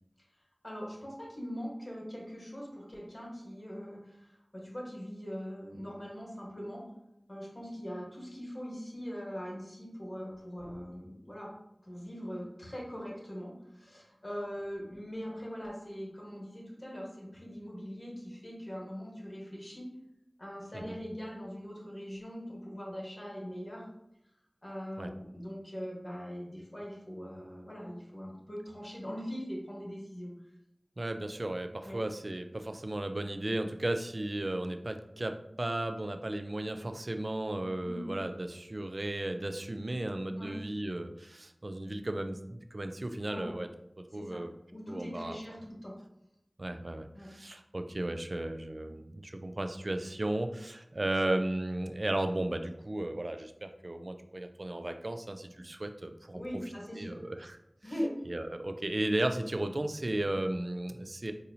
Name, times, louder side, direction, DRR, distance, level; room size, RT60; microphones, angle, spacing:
voice 1, 0.6-6.8 7.3-11.5 11.8-19.9 20.4-23.9 24.6-30.3 31.8-32.0 37.8-38.1 40.4-40.5 43.3-43.5 44.1-44.4 44.7-45.9 47.1-47.3 56.3-57.2 57.8-58.1, equal, 40° left, -3 dB, 1.3 m, -41 dB
voice 2, 31.0-43.7 44.1-44.5 44.9-45.4 46.6-56.4 57.0-57.6 58.3-61.3, right 1 dB, 60° right, 7 dB, 0.3 m, -35 dB
4.1 x 2.6 x 2.7 m, 0.84 s
wide cardioid pair, 40°, 0 cm